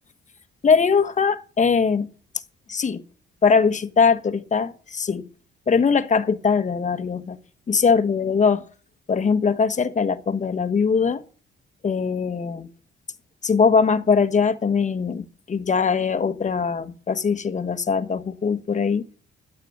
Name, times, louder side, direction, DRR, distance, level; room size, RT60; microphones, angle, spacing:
voice 1, 0.6-2.1 2.7-3.0 3.4-5.3 5.7-7.4 7.7-8.6 9.1-11.2 11.8-12.7 13.4-19.0, left 5 dB, 40° left, 1.3 m, -21 dB
12.5 x 8.5 x 6.7 m
cardioid pair, 90°, 20 cm